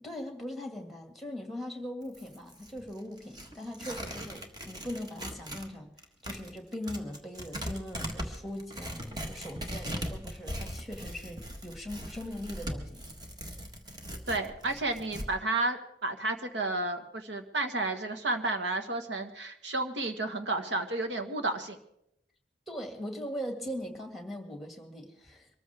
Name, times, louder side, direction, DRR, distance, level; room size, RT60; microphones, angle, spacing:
voice 1, 0.0-5.9 6.2-13.0 22.7-25.5, equal, ahead, 4 dB, 2.1 m, -40 dB
Tearing, 2.0-5.7 6.0-15.3, equal, 25° right, 1.5 m, -40 dB
voice 2, 14.3-21.8, right 2 dB, 85° right, 6 dB, 1.6 m, -32 dB
24.0 x 14.0 x 3.5 m, 0.76 s
head